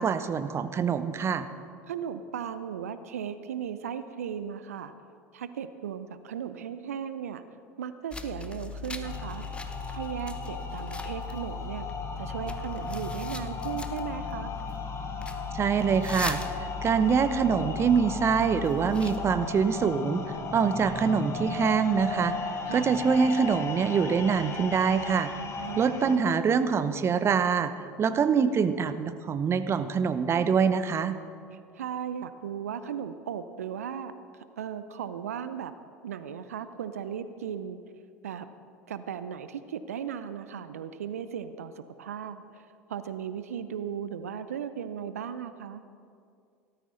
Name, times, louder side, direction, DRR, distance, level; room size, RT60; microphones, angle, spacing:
voice 1, 0.0-1.5 15.5-20.2 20.5-22.4 22.7-25.3 25.8-31.2, right 6 dB, 35° right, 11 dB, 0.9 m, -25 dB
voice 2, 1.9-4.9 5.3-7.4 7.8-9.5 9.9-11.9 12.2-14.5 22.6-23.0 25.6-26.2 31.5-35.7 36.0-37.8 38.2-38.5 38.9-45.8, right 8 dB, 75° right, 12 dB, 0.6 m, -36 dB
sound 1, 8.1-19.5, left 4 dB, 15° left, 1.1 m, -38 dB
sound 2, 9.0-26.2, left 4 dB, 35° left, 1.6 m, -36 dB
17.5 x 13.5 x 4.0 m, 2.3 s
figure-of-eight pair, 70°, 8 cm